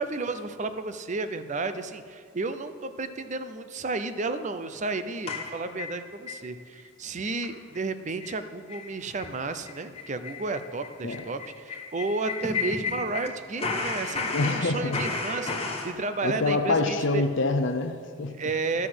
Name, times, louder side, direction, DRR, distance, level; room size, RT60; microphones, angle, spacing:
voice 1, 0.0-17.2 18.4-18.9, right 3 dB, 35° right, 10 dB, 0.6 m, -32 dB
sound 1, 5.3-6.4 6.8-6.9 7.2-7.5 7.7-7.8 8.2-8.4 8.7-8.9 9.2-9.3 9.6-13.3 13.6-15.9, left 4 dB, 30° left, 1.4 m, -33 dB
voice 2, 14.3-15.0 16.2-18.4, left 3 dB, 60° left, 7 dB, 0.7 m, -26 dB
12.5 x 6.0 x 7.8 m, 2.1 s
head